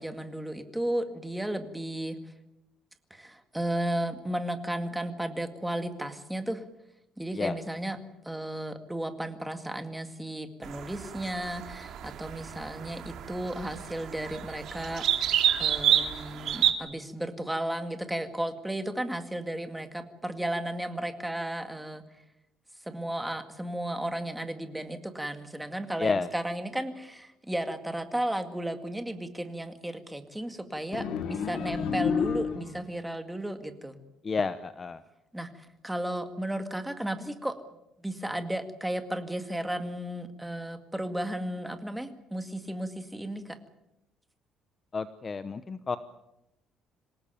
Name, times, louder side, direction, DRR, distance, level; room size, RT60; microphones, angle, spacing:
voice 1, 0.0-2.2 3.1-6.6 7.2-8.0 8.2-15.3 15.6-22.0 22.8-34.0 35.3-37.6 38.0-43.6, right 1 dB, 5° right, 7 dB, 2.0 m, -34 dB
sound 1, 10.6-16.7, right 10 dB, 55° right, 2.6 m, -29 dB
sound 2, 30.9-33.0, left 6 dB, 60° left, 2.2 m, -30 dB
voice 2, 34.2-35.0 44.9-46.0, left 4 dB, 25° left, 12 dB, 0.8 m, -30 dB
27.0 x 17.5 x 9.1 m, 0.88 s
cardioid pair, 160°, 0 cm